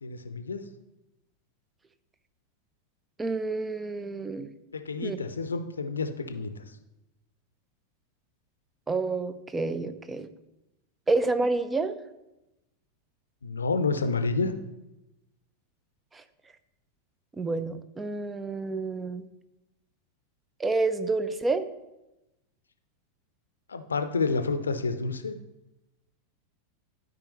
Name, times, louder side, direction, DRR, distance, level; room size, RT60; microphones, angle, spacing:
voice 1, 0.0-0.6 4.7-6.5 13.4-14.5 23.7-25.4, left 4 dB, 75° left, 9 dB, 0.6 m, -29 dB
voice 2, 3.2-4.5 5.0-5.2 8.9-10.3 11.1-12.0 16.1-16.2 17.4-19.2 20.6-21.6, right 3 dB, 15° right, 11 dB, 0.6 m, -29 dB
12.0 x 5.0 x 3.1 m, 0.95 s
figure-of-eight pair, 90°, 0 cm